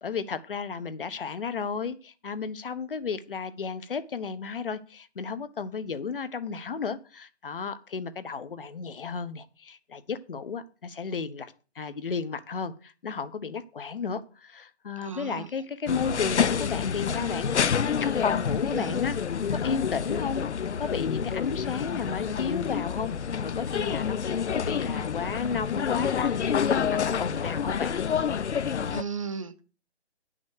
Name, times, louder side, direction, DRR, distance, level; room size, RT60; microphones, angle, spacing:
voice 1, 0.0-17.5 18.0-19.2 19.5-20.4 20.8-23.1 23.4-28.0, left 5 dB, 55° left, 13 dB, 1.2 m, -33 dB
voice 2, 15.0-15.5 18.7-19.0 28.9-29.6, right 5 dB, 30° right, 11 dB, 0.8 m, -35 dB
sound 1, 15.9-29.0, left 7 dB, 85° left, 0.8 m, -28 dB
10.5 x 6.3 x 6.5 m, 0.36 s
hypercardioid pair, 175°, 33 cm